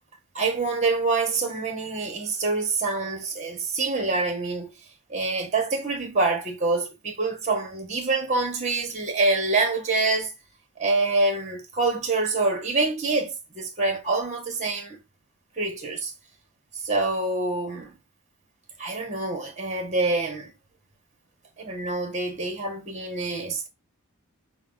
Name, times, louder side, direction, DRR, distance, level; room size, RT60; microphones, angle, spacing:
voice 1, 0.3-4.7 5.1-10.3 10.8-15.0 15.6-16.1 16.8-18.0 18.8-20.5 21.6-23.7, right 3 dB, 30° right, 1.3 m, -26 dB
5.7 x 2.4 x 3.7 m
head